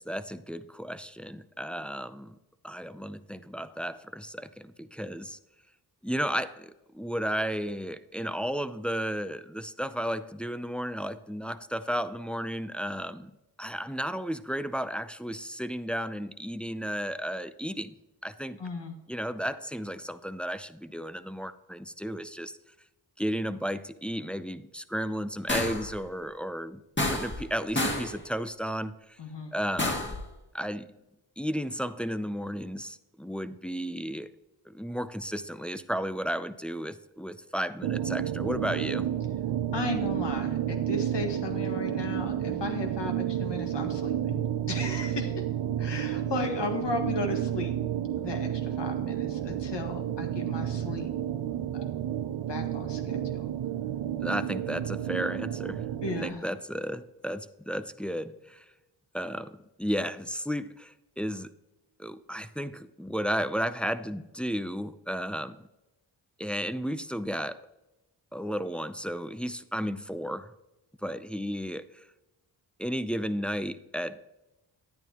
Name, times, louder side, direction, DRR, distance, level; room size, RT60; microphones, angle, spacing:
voice 1, 0.0-2.4 2.6-5.4 6.0-17.9 18.2-18.6 19.1-22.6 23.2-29.2 29.5-30.2 30.5-30.9 31.4-34.3 34.7-39.1 54.2-55.9 56.2-58.6 59.1-61.5 62.0-65.6 66.4-67.6 68.3-70.5 71.0-72.1 72.8-74.2, equal, ahead, 12 dB, 0.5 m, -33 dB
voice 2, 18.6-18.9 29.2-29.5 39.7-45.4 45.8-47.7 48.2-51.1 51.7-51.9 52.4-53.5 56.0-56.4, left 3 dB, 60° left, 4 dB, 1.8 m, -35 dB
sound 1, 25.5-25.9 27.0-27.5 27.8-28.2 29.8-30.2, left 1 dB, 25° left, 1.9 m, -29 dB
sound 2, 37.8-56.3, right 10 dB, 60° right, 0.7 m, -31 dB
10.5 x 9.1 x 3.0 m, 0.99 s
supercardioid pair, 40°, 48 cm